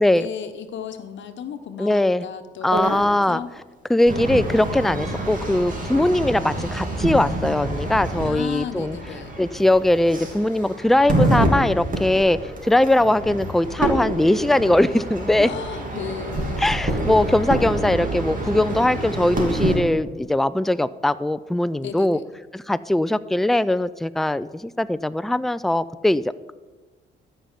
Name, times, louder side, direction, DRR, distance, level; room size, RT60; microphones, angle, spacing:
voice 1, 0.0-3.5 5.9-6.2 8.2-9.4 15.4-16.8 21.8-22.3, left 7 dB, 70° left, 8 dB, 1.0 m, -35 dB
voice 2, 1.8-2.3 2.6-3.4 3.9-9.0 9.4-15.5 16.6-22.2 22.5-26.5, left 1 dB, ahead, 15 dB, 0.3 m, -20 dB
sound 1, 2.7-3.0 4.1-19.8, right 1 dB, 45° right, 2.8 m, -27 dB
13.5 x 5.6 x 7.5 m, 1.3 s
cardioid pair, 90°, 20 cm